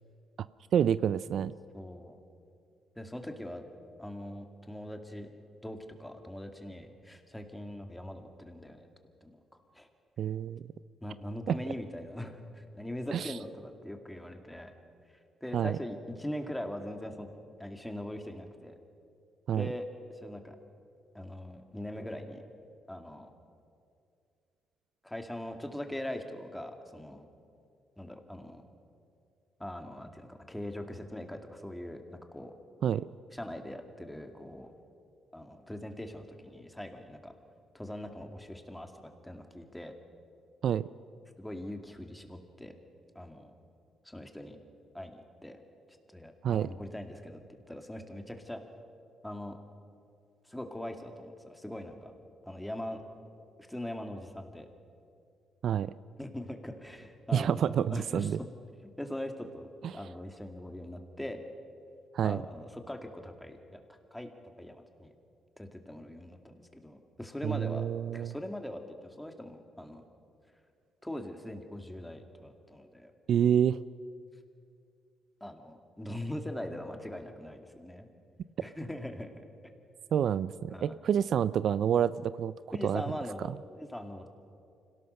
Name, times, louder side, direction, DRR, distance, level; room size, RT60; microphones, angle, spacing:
voice 1, 0.7-1.6 10.2-10.6 11.5-11.6 13.1-13.3 15.5-15.8 19.5-19.7 32.8-33.1 40.6-40.9 46.4-46.7 55.6-55.9 57.3-58.4 59.8-59.9 62.1-62.4 67.4-68.3 73.3-73.8 80.1-82.5 82.8-83.0, right 9 dB, 65° right, 17 dB, 0.4 m, -28 dB
voice 2, 1.7-2.2 3.0-3.7 4.0-5.3 5.6-8.9 9.2-9.4 9.7-9.9 11.0-14.7 15.4-17.3 17.6-18.8 19.5-19.9 20.1-20.6 21.1-22.4 22.9-23.3 25.0-27.2 28.0-28.6 29.6-32.5 33.3-34.7 35.3-37.3 37.7-38.9 39.2-39.9 41.4-42.7 43.1-43.5 44.0-44.6 44.9-45.6 46.1-48.6 49.2-49.6 50.4-52.1 52.4-53.0 53.6-54.7 56.2-58.4 58.8-61.4 62.2-64.3 64.6-65.1 65.6-67.9 68.1-70.0 71.0-73.1 75.4-78.1 78.6-79.3 80.7-81.0 82.7-83.5 83.8-84.3, left 1 dB, 5° left, 5 dB, 2.3 m, -41 dB
25.5 x 17.5 x 6.6 m, 2.4 s
cardioid pair, 90°, 0 cm